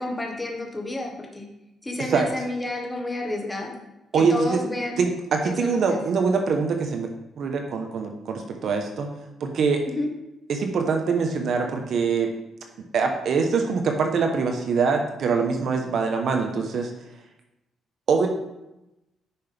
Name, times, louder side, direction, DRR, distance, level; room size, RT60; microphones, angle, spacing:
voice 1, 0.0-1.5 1.8-3.8 4.1-5.0 5.4-6.0 9.9-10.1, left 1 dB, 15° left, 1 dB, 1.6 m, -30 dB
voice 2, 4.1-4.6 5.0-9.1 9.4-9.8 10.5-12.3 12.9-16.9 18.1-18.3, right 5 dB, 60° right, 4 dB, 1.1 m, -23 dB
9.9 x 6.0 x 3.5 m, 0.94 s
cardioid pair, 90°, 0 cm